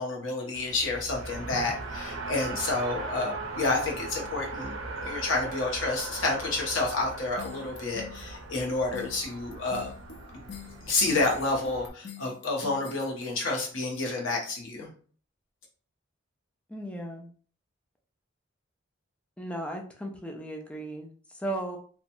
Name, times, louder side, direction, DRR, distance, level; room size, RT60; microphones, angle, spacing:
voice 1, 0.0-9.9 10.8-14.9, left 3 dB, 90° left, -2 dB, 0.8 m, -29 dB
Race car auto racing, 0.5-11.9, right 3 dB, 80° right, 0.5 m, -39 dB
sound 1, 7.4-13.6, left 8 dB, 60° left, 0.5 m, -45 dB
voice 2, 16.7-17.3 19.4-21.8, right 1 dB, 5° left, 1 dB, 0.4 m, -36 dB
2.9 x 2.2 x 2.5 m, 0.43 s
head